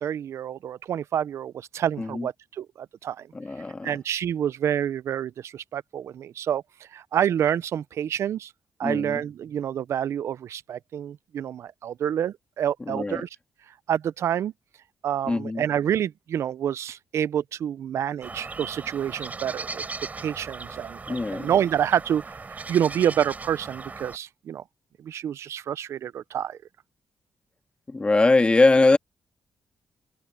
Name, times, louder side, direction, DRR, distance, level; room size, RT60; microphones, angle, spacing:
voice 1, 0.0-3.3 3.8-8.5 8.8-13.3 13.9-14.5 15.0-19.8 20.2-24.6 25.0-26.6, right 9 dB, 70° right, 0.5 m, -28 dB
voice 2, 3.3-3.9 8.8-9.2 12.9-13.2 15.3-15.6 21.1-21.5 27.9-29.0, left 3 dB, 25° left, 1.7 m, -21 dB
sound 1, 18.2-24.2, right 4 dB, 35° right, 7.5 m, -38 dB
cardioid pair, 90°, 5 cm